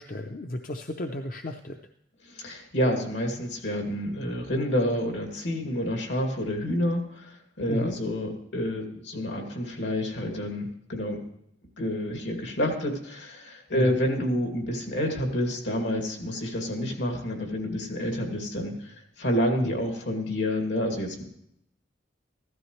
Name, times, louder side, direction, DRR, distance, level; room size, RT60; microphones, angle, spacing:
voice 1, 0.0-1.8 7.7-8.0 13.7-14.0 19.6-19.7, left 1 dB, 45° left, 5 dB, 0.6 m, -34 dB
voice 2, 2.2-11.2 11.8-21.2, equal, 75° left, 2 dB, 2.4 m, -29 dB
15.5 x 13.0 x 3.2 m, 0.74 s
head